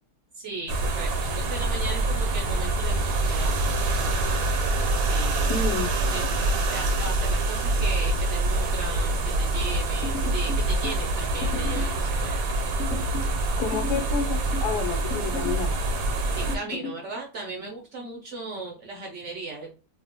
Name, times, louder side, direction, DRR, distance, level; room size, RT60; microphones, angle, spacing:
voice 1, 0.4-3.7 5.1-5.5 6.1-12.4 16.4-19.7, right 3 dB, 65° right, 1 dB, 0.7 m, -37 dB
sound 1, 0.7-16.6, right 2 dB, 80° right, 1.1 m, -25 dB
voice 2, 5.5-5.9 13.6-15.7, left 6 dB, 85° left, 4 dB, 1.2 m, -29 dB
sound 2, 10.0-11.0 11.4-12.0 12.8-13.4 13.7-14.7 15.1-15.7 16.5-17.0, left 5 dB, 65° left, 0.9 m, -35 dB
2.8 x 2.1 x 2.7 m, 0.33 s
omnidirectional pair, 1.7 m